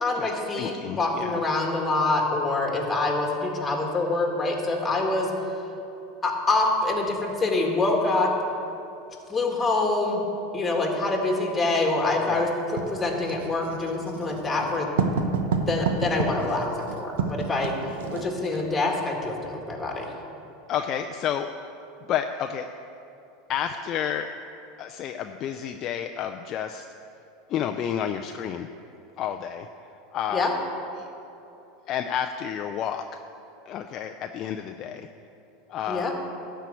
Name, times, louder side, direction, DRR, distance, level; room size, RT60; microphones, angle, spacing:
voice 1, 0.0-5.3 6.2-8.3 9.3-10.2 10.5-12.5 12.9-14.9 15.7-17.8 18.1-20.1 30.3-30.5 35.9-36.1, left 2 dB, 15° left, 1 dB, 1.8 m, -25 dB
voice 2, 0.6-1.4 12.3-12.5 20.7-21.5 22.1-22.7 23.5-24.3 24.8-26.9 27.5-28.7 29.2-29.7 30.1-30.5 31.0-31.1 31.9-33.1 33.7-35.1 35.7-36.1, left 9 dB, 40° left, 5 dB, 0.4 m, -30 dB
Writing, 12.8-18.7, right 5 dB, 80° right, 0.9 m, -29 dB
12.0 x 4.6 x 8.4 m, 2.9 s
supercardioid pair, 120°, 0 cm